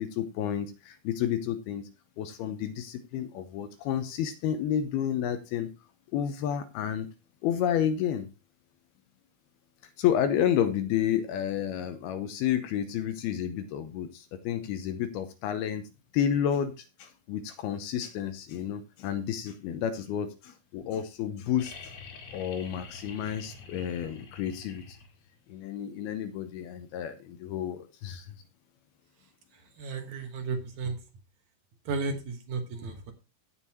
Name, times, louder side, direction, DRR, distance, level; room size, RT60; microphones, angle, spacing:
voice 1, 0.0-1.9 2.2-5.7 6.1-7.1 7.4-8.3 10.0-21.9 22.3-25.0 25.5-28.3, left 9 dB, 85° left, 9 dB, 2.7 m, -30 dB
sound 1, 21.6-25.4 27.1-27.2, left 4 dB, 50° left, 3.0 m, -46 dB
voice 2, 29.8-31.0 31.9-33.1, right 4 dB, 60° right, 6 dB, 2.3 m, -33 dB
16.5 x 6.6 x 2.8 m, 0.28 s
omnidirectional pair, 4.5 m